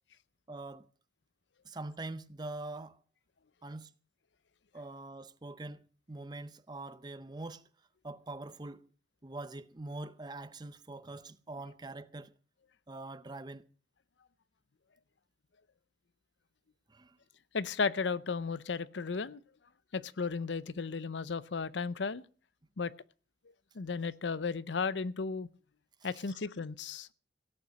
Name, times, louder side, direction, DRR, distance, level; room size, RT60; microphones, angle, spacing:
voice 1, 0.5-0.9 1.6-3.0 3.6-3.9 4.7-7.6 8.0-8.8 9.2-12.3 12.9-13.6 16.9-17.1 26.0-26.1, right 2 dB, 25° right, 0.6 m, -44 dB
voice 2, 17.5-19.4 19.9-22.2 22.8-22.9 23.8-25.5 26.0-27.1, left 4 dB, 75° left, 0.6 m, -34 dB
17.0 x 8.6 x 6.3 m
head